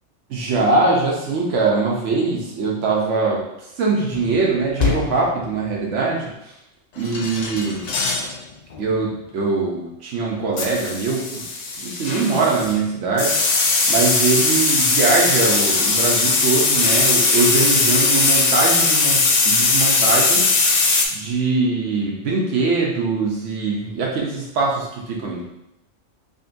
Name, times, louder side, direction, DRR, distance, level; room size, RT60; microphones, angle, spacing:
voice 1, 0.3-6.5 7.0-7.8 8.8-11.4 11.8-13.4 13.9-20.5 21.1-25.4, right 3 dB, 80° right, -3 dB, 1.0 m, -22 dB
sound 1, 4.1-4.4 4.8-5.3 7.0-8.3 8.7-9.0 10.6-12.8 13.2-21.1, left 3 dB, 65° left, 0.4 m, -19 dB
5.1 x 2.5 x 2.5 m, 0.87 s
omnidirectional pair, 1.2 m